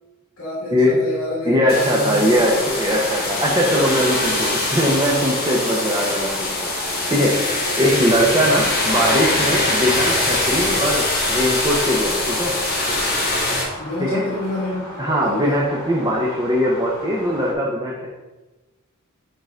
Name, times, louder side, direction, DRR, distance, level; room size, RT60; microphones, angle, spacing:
voice 1, 0.4-2.4 7.8-8.4 13.8-15.7, left 1 dB, 65° left, -8 dB, 2.2 m, -28 dB
voice 2, 1.4-6.7 7.1-7.4 7.8-12.6 14.0-14.2 15.0-18.1, equal, 20° right, -4 dB, 1.0 m, -20 dB
sound 1, 1.7-13.6, left 2 dB, 45° left, 1.7 m, -23 dB
sound 2, 2.1-17.5, left 1 dB, 15° left, 2.2 m, -35 dB
9.1 x 3.9 x 3.8 m, 1.1 s
head